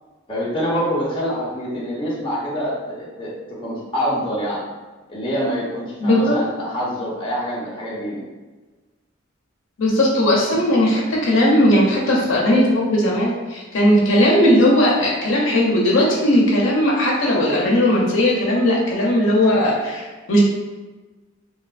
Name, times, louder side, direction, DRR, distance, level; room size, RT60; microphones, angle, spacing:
voice 1, 0.3-4.6 5.1-8.2, equal, 25° left, -7 dB, 0.7 m, -25 dB
voice 2, 6.0-6.4 9.8-20.4, left 1 dB, 65° left, -3 dB, 0.6 m, -17 dB
3.1 x 2.7 x 2.4 m, 1.3 s
head